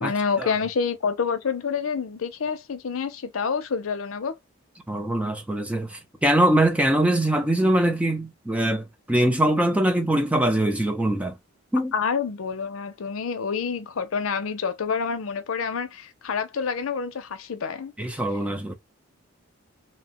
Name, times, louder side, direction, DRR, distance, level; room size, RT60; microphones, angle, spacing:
voice 1, 0.0-4.4 11.9-17.9, left 5 dB, 90° left, 0.5 m, -28 dB
voice 2, 4.9-11.4 11.7-11.9 18.0-18.7, right 1 dB, 5° right, 0.4 m, -22 dB
2.7 x 2.1 x 2.8 m
head